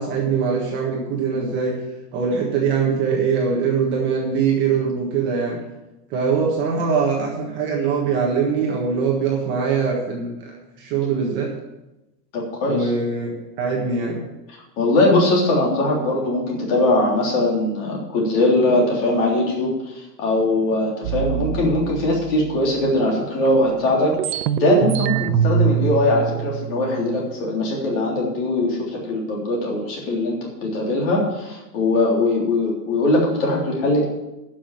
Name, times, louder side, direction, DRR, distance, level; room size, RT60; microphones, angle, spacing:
voice 1, 0.0-1.8 2.1-5.6 6.1-11.5 12.7-14.2, right 5 dB, 25° right, -1 dB, 1.5 m, -22 dB
voice 2, 12.3-12.9 14.5-34.0, left 2 dB, 35° left, -2 dB, 3.5 m, -21 dB
sound 1, 21.0-23.0 23.5-23.6 23.8-27.4, right 9 dB, 85° right, 0.8 m, -24 dB
11.0 x 6.4 x 8.8 m, 0.98 s
supercardioid pair, 180°, 48 cm